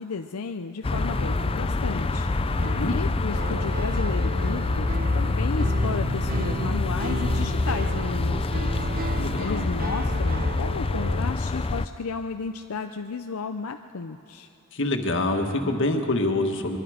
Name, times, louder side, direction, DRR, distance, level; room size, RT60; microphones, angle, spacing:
voice 1, 0.0-14.5, left 4 dB, 90° left, 6 dB, 0.6 m, -34 dB
sound 1, 0.8-11.9, left 3 dB, 25° left, 0.4 m, -26 dB
sound 2, 0.9-11.2, right 3 dB, 45° right, 0.5 m, -35 dB
voice 2, 2.5-3.0 9.2-9.6 14.7-16.8, left 2 dB, 60° left, 4 dB, 1.7 m, -26 dB
23.5 x 22.5 x 5.0 m, 2.6 s
head